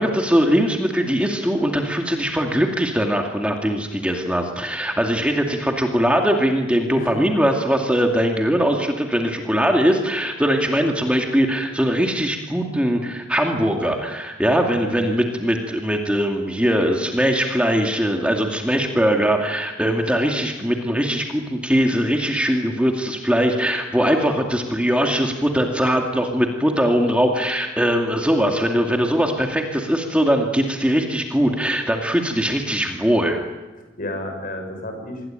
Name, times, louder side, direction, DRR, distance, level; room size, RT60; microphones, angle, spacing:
voice 1, 0.0-33.4, equal, 5° right, 2 dB, 2.4 m, -21 dB
voice 2, 6.9-7.4 14.8-15.1 33.8-35.2, left 1 dB, 45° left, 5 dB, 6.8 m, -32 dB
27.5 x 21.5 x 9.1 m, 1.2 s
head